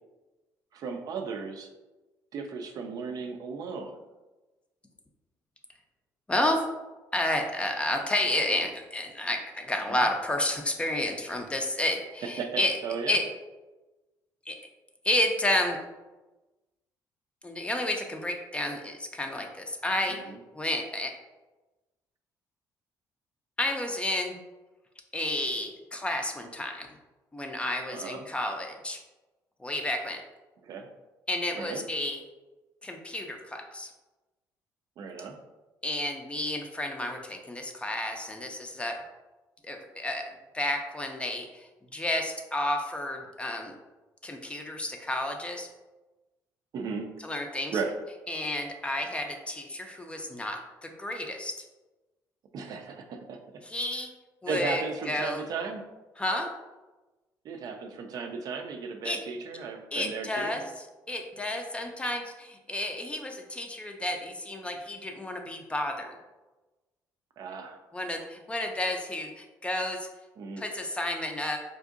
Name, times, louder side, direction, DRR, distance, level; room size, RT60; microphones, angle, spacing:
voice 1, 0.7-1.7 2.3-4.0 9.9-10.0 12.4-13.2 20.2-20.4 27.9-28.2 30.6-30.9 31.5-31.8 35.0-35.4 46.7-47.1 47.7-47.9 52.5-53.6 54.5-55.8 57.4-60.6 67.4-67.8 70.4-70.6, right 5 dB, 60° right, 4 dB, 0.4 m, -35 dB
voice 2, 6.3-6.6 7.1-12.8 13.1-13.2 14.5-14.6 15.0-15.8 17.4-20.2 20.5-21.1 23.6-24.4 25.1-26.9 27.3-29.0 29.6-30.2 31.3-32.2 32.8-33.9 35.8-39.0 39.6-40.3 40.5-43.7 44.2-45.7 47.2-47.8 48.3-51.5 53.6-54.1 54.4-55.4 56.2-56.5 59.0-59.2 59.9-60.7 61.1-66.1 67.9-70.1 70.6-71.6, left 1 dB, 15° left, 3 dB, 0.4 m, -31 dB
3.6 x 2.5 x 2.5 m, 1.1 s
cardioid pair, 100°, 7 cm